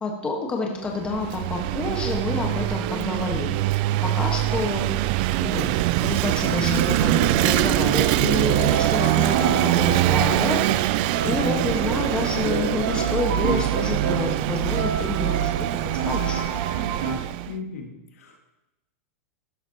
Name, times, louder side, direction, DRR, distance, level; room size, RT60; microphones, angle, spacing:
voice 1, 0.0-5.7 6.0-15.4 16.1-16.4, left 3 dB, 15° left, 1 dB, 1.4 m, -29 dB
Vehicle / Engine, 0.9-17.5, right 16 dB, 40° right, 0.3 m, -23 dB
Piano, 6.4-14.4 14.7-17.1, right 4 dB, 70° right, 2.8 m, -31 dB
voice 2, 17.5-18.4, left 5 dB, 90° left, 1 dB, 2.1 m, -37 dB
13.5 x 11.0 x 2.9 m, 0.98 s
supercardioid pair, 160°, 7 cm